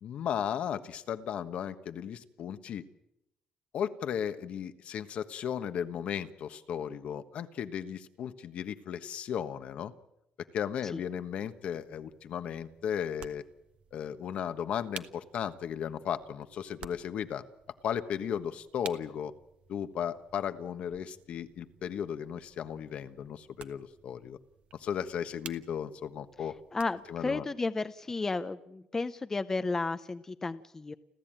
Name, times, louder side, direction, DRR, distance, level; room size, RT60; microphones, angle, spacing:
voice 1, 0.0-2.8 3.7-9.9 10.5-13.4 13.9-17.4 17.8-19.3 19.7-24.4 24.8-26.5 27.1-27.4, left 8 dB, 60° left, 10 dB, 1.3 m, -35 dB
sound 1, 10.9-27.3, right 8 dB, 55° right, 1.3 m, -53 dB
voice 2, 26.7-30.9, left 3 dB, 20° left, 11 dB, 0.8 m, -33 dB
29.5 x 13.0 x 9.0 m, 0.86 s
cardioid pair, 130°, 2 cm